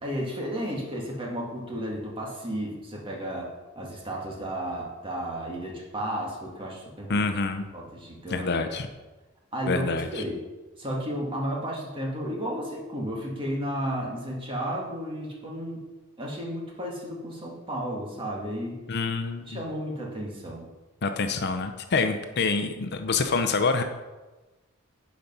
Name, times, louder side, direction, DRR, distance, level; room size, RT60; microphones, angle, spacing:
voice 1, 0.0-7.2 7.7-8.6 9.5-10.4 10.8-15.8 16.2-18.8 19.5-20.7, equal, 25° right, -2 dB, 2.0 m, -33 dB
voice 2, 7.1-7.7 8.3-8.9 9.7-10.2 18.9-19.7 21.0-23.8, left 4 dB, 50° left, 7 dB, 0.7 m, -26 dB
10.5 x 5.2 x 5.5 m, 1.2 s
head